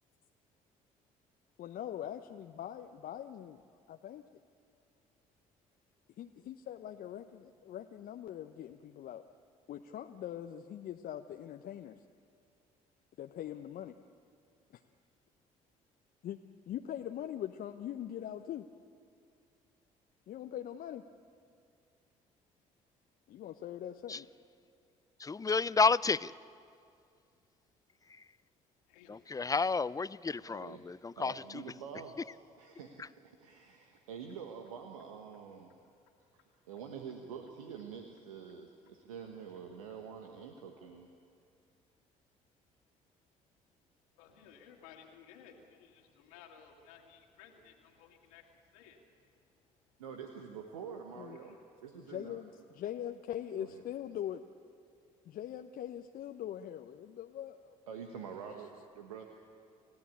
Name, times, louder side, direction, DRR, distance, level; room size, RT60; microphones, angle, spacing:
voice 1, 1.6-3.6 3.9-4.2 6.2-9.2 9.7-12.0 13.2-14.0 16.2-18.7 20.3-21.0 23.3-24.3 51.2-51.4 52.0-54.4 55.2-57.8, left 11 dB, 55° left, 6 dB, 0.9 m, -42 dB
voice 2, 25.2-26.3 29.1-31.3, left 4 dB, 20° left, 19 dB, 0.5 m, -30 dB
voice 3, 30.4-35.7 36.3-41.1 50.0-51.6 51.8-52.4 53.5-53.8 57.9-59.3, right 6 dB, 80° right, 3 dB, 1.3 m, -47 dB
voice 4, 44.2-49.0, left 8 dB, 75° left, 1 dB, 2.3 m, -57 dB
30.0 x 15.5 x 8.6 m, 2.3 s
hypercardioid pair, 50°, 18 cm